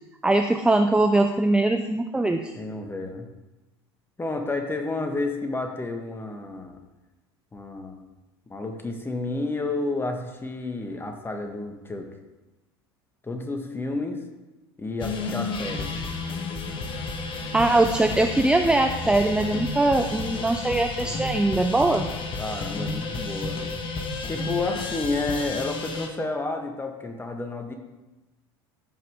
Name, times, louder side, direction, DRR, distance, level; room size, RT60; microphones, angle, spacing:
voice 1, 0.2-2.5 17.5-22.1, right 2 dB, 5° right, 5 dB, 0.6 m, -21 dB
voice 2, 2.6-3.3 4.2-6.8 7.5-8.1 8.5-12.1 13.2-14.2 14.8-15.9 22.4-23.6 24.3-27.7, left 2 dB, 15° left, 4 dB, 1.7 m, -30 dB
sound 1, 15.0-26.1, left 3 dB, 40° left, 1.5 m, -32 dB
14.5 x 5.6 x 3.7 m, 1.1 s
hypercardioid pair, 75°, 13 cm